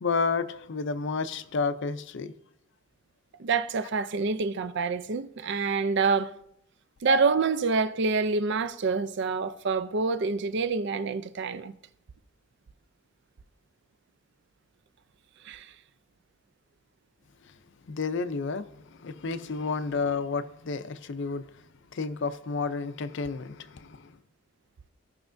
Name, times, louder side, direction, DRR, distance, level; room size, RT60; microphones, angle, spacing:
voice 1, 0.0-2.3 17.9-21.6 21.9-24.1, left 4 dB, 55° left, 0.5 m, -31 dB
voice 2, 3.4-6.3 7.0-11.7 15.4-15.7, right 4 dB, 55° right, 0.4 m, -27 dB
16.0 x 5.8 x 2.6 m
head